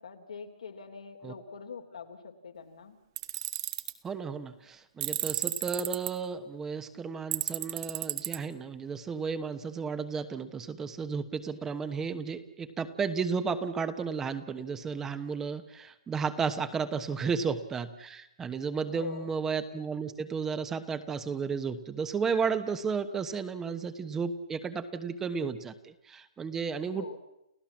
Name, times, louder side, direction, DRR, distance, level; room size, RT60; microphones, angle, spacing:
voice 1, 0.0-3.0 17.2-17.4 18.9-19.3 26.8-27.2, left 6 dB, 80° left, 4 dB, 3.5 m, -44 dB
Tools, 3.2-3.9 5.0-6.1 7.3-8.4, right 15 dB, 40° right, 1.6 m, -32 dB
voice 2, 4.0-27.2, right 5 dB, 15° right, 11 dB, 1.1 m, -33 dB
30.0 x 15.0 x 7.4 m, 0.85 s
hypercardioid pair, 145°, 3 cm